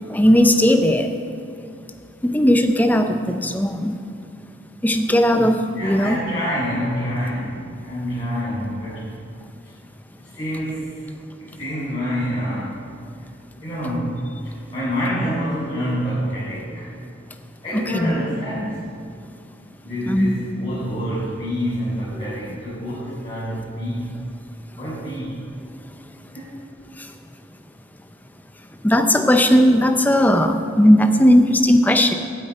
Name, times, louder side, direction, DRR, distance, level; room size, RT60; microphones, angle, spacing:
voice 1, 0.1-1.1 2.2-3.9 4.8-6.2 17.7-18.1 20.1-20.4 22.3-22.4 28.8-32.1, equal, 10° left, 6 dB, 0.6 m, -17 dB
voice 2, 5.7-9.2 10.2-11.0 11.4-12.8 13.1-13.2 13.6-16.9 17.6-18.9 19.8-24.2 24.8-25.4 26.3-26.6, equal, 25° left, -11 dB, 3.5 m, -27 dB
8.6 x 8.6 x 8.6 m, 2.5 s
head